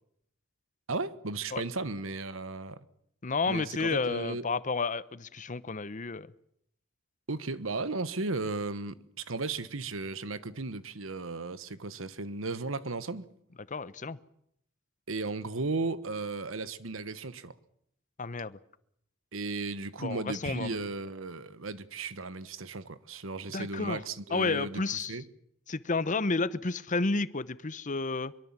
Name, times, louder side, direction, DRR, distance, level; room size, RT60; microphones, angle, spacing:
voice 1, 0.9-2.8 3.5-4.4 7.3-13.3 15.1-17.5 19.3-24.8 25.1-25.2, right 3 dB, 85° right, 1.2 m, -35 dB
voice 2, 3.2-6.3 13.7-14.2 18.2-18.6 20.0-20.9 23.5-25.2 25.7-28.3, left 3 dB, 40° left, 0.9 m, -31 dB
23.0 x 23.0 x 7.4 m
head